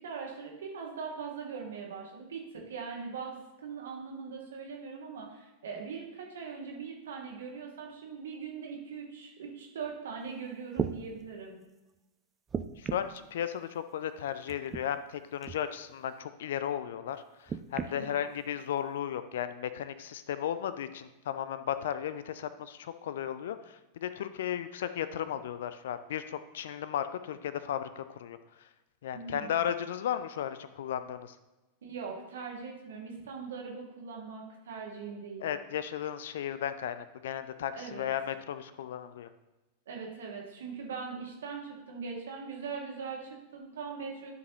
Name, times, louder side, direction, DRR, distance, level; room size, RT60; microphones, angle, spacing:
voice 1, 0.0-11.6 17.8-18.2 29.1-29.7 31.8-35.4 37.8-38.1 39.9-44.3, right 5 dB, 60° right, 0 dB, 1.7 m, -41 dB
sound 1, 10.2-10.3 10.7-11.0 12.5-13.2 14.5-14.8 15.4-15.6 17.5-17.9 18.8-18.9, right 6 dB, 20° right, 0.4 m, -35 dB
voice 2, 12.8-28.7 29.0-31.4 35.4-39.3, left 9 dB, 60° left, 13 dB, 0.4 m, -35 dB
12.5 x 5.1 x 2.9 m, 1.1 s
figure-of-eight pair, 90°, 0 cm